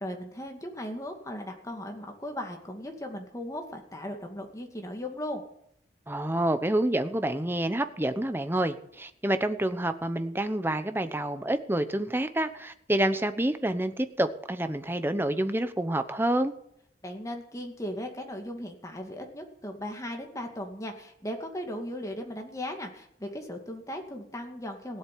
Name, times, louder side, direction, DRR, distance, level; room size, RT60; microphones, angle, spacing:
voice 1, 0.0-5.4 17.0-25.0, left 1 dB, 20° left, 3 dB, 2.3 m, -37 dB
voice 2, 6.1-16.5, right 1 dB, 10° right, 9 dB, 0.9 m, -28 dB
17.0 x 8.0 x 9.5 m, 0.71 s
head